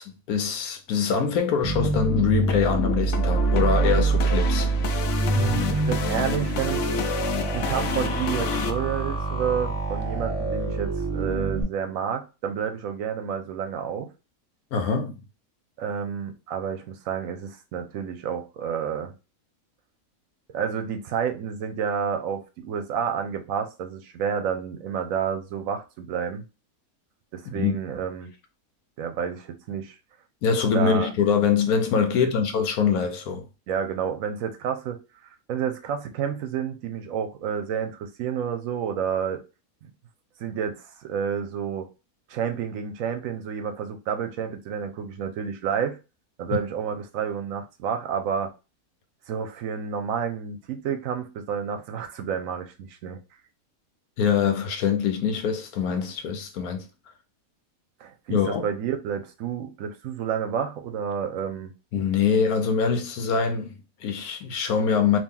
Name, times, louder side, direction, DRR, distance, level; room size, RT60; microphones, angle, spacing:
voice 1, 0.0-4.7 14.7-15.1 27.5-27.7 30.4-33.5 54.2-56.8 58.3-58.6 61.9-65.2, left 6 dB, 90° left, 1.2 m, -24 dB
sound 1, 1.6-11.6, right 3 dB, 25° right, 1.3 m, -26 dB
sound 2, 1.8-8.7, left 8 dB, 65° left, 0.8 m, -30 dB
voice 2, 5.3-6.9 7.5-14.1 15.8-19.1 20.5-26.4 27.3-28.3 29.0-30.0 30.7-31.1 32.1-32.3 33.7-39.4 39.8-39.9 40.4-41.9 42.3-46.0 46.4-48.5 49.3-53.2 58.0-61.7, right 7 dB, 75° right, 1.0 m, -30 dB
2.9 x 2.8 x 3.6 m
omnidirectional pair, 1.5 m